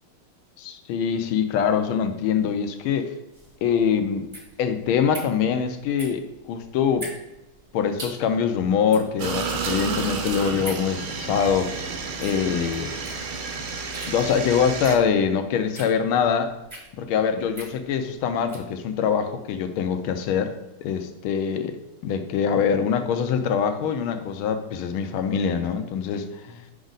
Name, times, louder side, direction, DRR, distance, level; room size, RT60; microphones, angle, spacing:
voice 1, 0.6-3.1 3.6-4.3 4.6-7.1 7.7-11.7 12.2-12.9 14.1-16.6 17.0-21.8 22.0-26.6, left 7 dB, 75° left, 8 dB, 1.4 m, -24 dB
sound 1, 3.3-18.7, right 1 dB, 20° right, 0.8 m, -43 dB
sound 2, 9.2-15.0, right 5 dB, 75° right, 1.7 m, -31 dB
6.0 x 5.1 x 3.9 m, 0.92 s
omnidirectional pair, 2.4 m